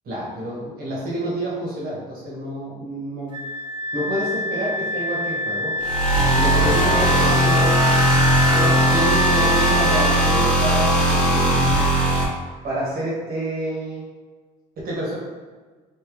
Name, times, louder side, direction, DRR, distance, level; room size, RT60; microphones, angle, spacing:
voice 1, 0.0-3.4 3.9-5.7 6.3-7.7 8.5-11.7 12.6-14.0 14.8-15.2, right 1 dB, 60° right, -6 dB, 1.4 m, -28 dB
Wind instrument woodwind instrument, 3.3-10.4, left 1 dB, 30° right, 0.6 m, -25 dB
sound 1, 5.8-12.2, right 1 dB, 5° left, 0.8 m, -18 dB
3.3 x 2.8 x 3.1 m, 1.4 s
cardioid pair, 110°, 17 cm